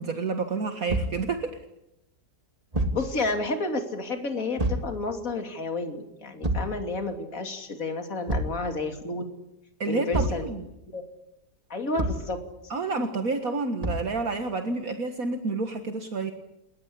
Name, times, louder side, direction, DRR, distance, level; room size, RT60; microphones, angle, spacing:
voice 1, 0.0-1.6 9.8-10.6 12.7-16.3, right 3 dB, 60° right, 6 dB, 2.1 m, -29 dB
Thump thud, 0.9-1.2 2.7-3.1 4.6-4.9 6.4-6.8 8.3-8.6 10.1-10.5 12.0-12.3 13.8-14.2, right 1 dB, 20° right, 2.5 m, -27 dB
voice 2, 2.9-9.3 9.8-10.5 10.9-11.1 11.7-12.4, left 3 dB, 55° left, 5 dB, 3.2 m, -31 dB
29.0 x 21.0 x 8.6 m, 0.86 s
omnidirectional pair, 1.7 m